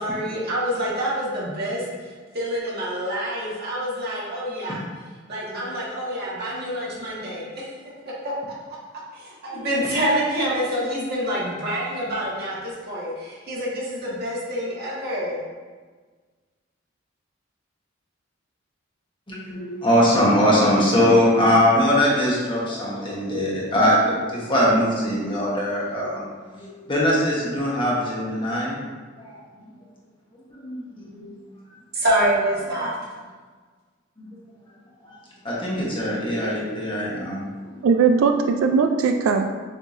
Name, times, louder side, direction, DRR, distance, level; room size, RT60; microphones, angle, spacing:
voice 1, 0.0-4.8 5.3-7.7 9.1-15.4 31.9-32.9, equal, 55° right, -7 dB, 1.4 m, -26 dB
voice 2, 19.3-28.7 29.2-29.4 30.5-31.3 34.3-34.4 35.0-35.1 35.4-37.4, equal, 25° left, -5 dB, 1.1 m, -21 dB
voice 3, 37.8-39.5, right 5 dB, 85° right, 5 dB, 0.3 m, -19 dB
6.8 x 2.8 x 2.5 m, 1.5 s
head